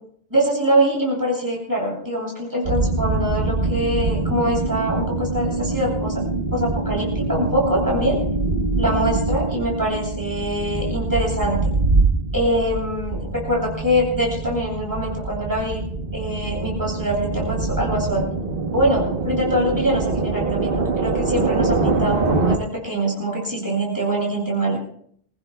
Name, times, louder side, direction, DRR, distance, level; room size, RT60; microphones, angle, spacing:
voice 1, 0.3-6.2 6.5-8.2 8.8-11.6 12.3-15.8 16.1-18.3 18.7-24.8, right 1 dB, 20° right, -3 dB, 8.1 m, -23 dB
sound 1, 2.6-22.6, right 3 dB, 60° right, 1.4 m, -24 dB
28.5 x 16.0 x 2.3 m, 0.64 s
omnidirectional pair, 1.1 m